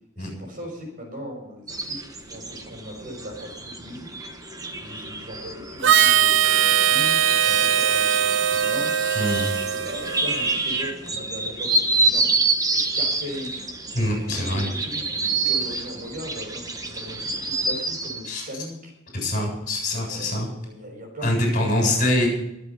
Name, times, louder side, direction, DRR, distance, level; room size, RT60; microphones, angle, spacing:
voice 1, 0.2-4.1 4.8-9.1 9.4-12.2 12.7-13.7 14.1-18.9 20.1-22.1, equal, 40° right, 2 dB, 5.8 m, -38 dB
sound 1, 1.7-18.3, right 3 dB, 15° right, 1.3 m, -28 dB
Harmonica, 5.8-10.6, right 9 dB, 60° right, 0.6 m, -20 dB
voice 2, 9.2-9.5 13.9-14.6 18.3-18.4 19.1-20.5 21.2-22.3, left 1 dB, 40° left, 0 dB, 7.5 m, -24 dB
23.5 x 7.9 x 5.6 m, 0.84 s
head